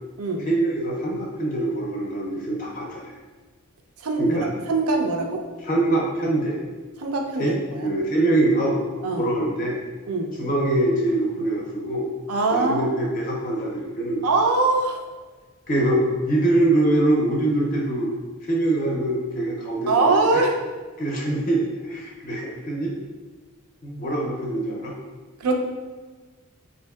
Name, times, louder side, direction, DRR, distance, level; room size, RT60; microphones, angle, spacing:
voice 1, 0.4-3.0 4.2-4.5 5.6-6.6 7.4-7.5 7.8-8.8 9.2-9.8 10.4-12.1 12.5-14.3 15.7-18.1 18.4-20.4 21.0-22.9 23.8-24.9, right 1 dB, 40° left, -3 dB, 0.4 m, -23 dB
voice 2, 4.0-4.4 4.7-5.4 7.0-7.9 9.0-9.3 10.1-10.3 12.3-13.0 14.2-15.0 19.9-20.6 25.4-25.6, right 3 dB, 85° right, 2 dB, 0.4 m, -22 dB
3.5 x 2.6 x 2.2 m, 1.3 s
head